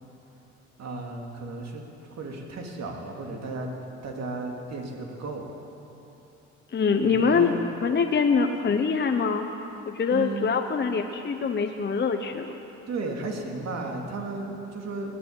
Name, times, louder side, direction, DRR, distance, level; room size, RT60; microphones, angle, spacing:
voice 1, 0.8-3.7 4.0-5.5 7.0-7.6 10.1-10.5 12.9-15.2, right 3 dB, 60° right, 1 dB, 2.6 m, -34 dB
voice 2, 6.7-9.5 9.9-12.6, left 5 dB, 35° left, 5 dB, 0.9 m, -24 dB
19.5 x 8.4 x 8.8 m, 3.0 s
cardioid pair, 90°, 30 cm